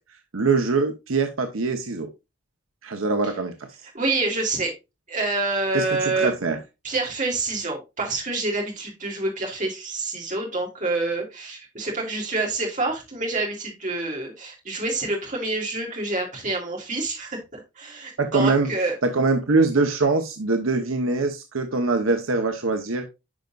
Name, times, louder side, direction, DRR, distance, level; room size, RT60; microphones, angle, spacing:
voice 1, 0.3-2.1 2.8-3.5 5.7-6.6 18.2-18.7 19.0-23.0, right 3 dB, 85° right, 5 dB, 1.0 m, -23 dB
voice 2, 3.9-4.7 5.1-6.3 6.8-19.0, right 2 dB, 40° right, 0 dB, 3.1 m, -27 dB
10.0 x 5.3 x 2.5 m, 0.24 s
head